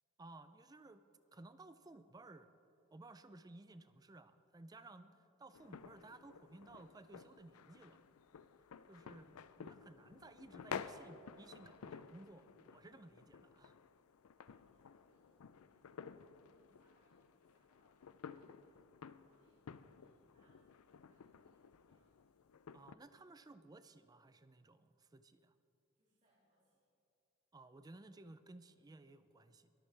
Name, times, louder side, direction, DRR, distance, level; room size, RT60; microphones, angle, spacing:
voice 1, 0.2-1.0 1.3-2.5 2.9-8.0 8.9-13.8 22.7-25.5 27.5-29.7, right 2 dB, 20° right, 12 dB, 0.4 m, -57 dB
sound 1, 5.5-22.9, left 6 dB, 85° left, 0.5 m, -53 dB
voice 2, 14.3-22.2 25.9-26.9, equal, 35° right, -8 dB, 2.6 m, -79 dB
22.0 x 13.5 x 3.4 m, 2.6 s
head